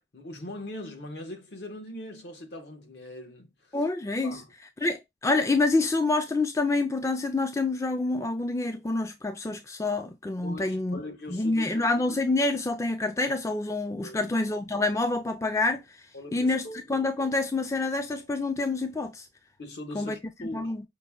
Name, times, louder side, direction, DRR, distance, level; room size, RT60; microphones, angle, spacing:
voice 1, 0.1-3.7 4.2-4.5 10.4-11.8 14.0-14.3 16.1-16.8 19.6-20.8, left 1 dB, 75° left, 1.1 m, -41 dB
voice 2, 3.7-4.4 4.8-11.0 11.3-15.8 16.3-19.3 19.9-20.2 20.5-20.8, left 2 dB, 15° left, 0.3 m, -27 dB
5.2 x 2.2 x 2.3 m
head